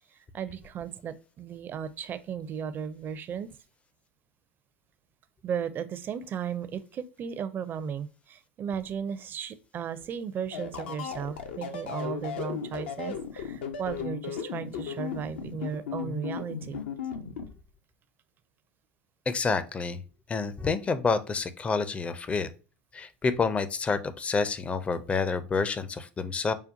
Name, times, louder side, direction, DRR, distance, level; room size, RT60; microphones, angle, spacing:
voice 1, 0.3-3.6 5.4-16.8, right 7 dB, 35° right, 0.4 m, -35 dB
sound 1, 10.5-17.5, left 7 dB, 75° left, 0.6 m, -35 dB
voice 2, 19.3-20.0 20.3-22.5 22.9-26.5, left 4 dB, 20° left, 0.4 m, -28 dB
5.0 x 2.2 x 2.5 m
hypercardioid pair, 90°, 6 cm